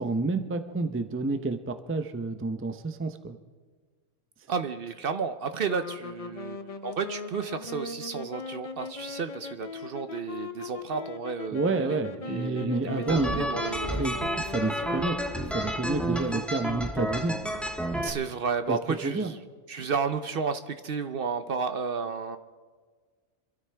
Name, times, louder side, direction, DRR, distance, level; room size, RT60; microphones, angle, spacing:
voice 1, 0.0-3.4 11.5-13.5 14.0-17.4 18.7-18.8 19.0-19.3 19.8-19.9, right 3 dB, 15° right, 9 dB, 0.5 m, -29 dB
voice 2, 4.5-14.0 18.0-19.4 19.7-22.4, right 5 dB, 55° right, 10 dB, 0.8 m, -32 dB
sound 1, 5.7-16.1, left 4 dB, 35° left, 0.6 m, -40 dB
sound 2, 13.1-18.1, right 1 dB, ahead, 1.1 m, -31 dB
25.5 x 13.0 x 3.4 m, 1.5 s
omnidirectional pair, 1.3 m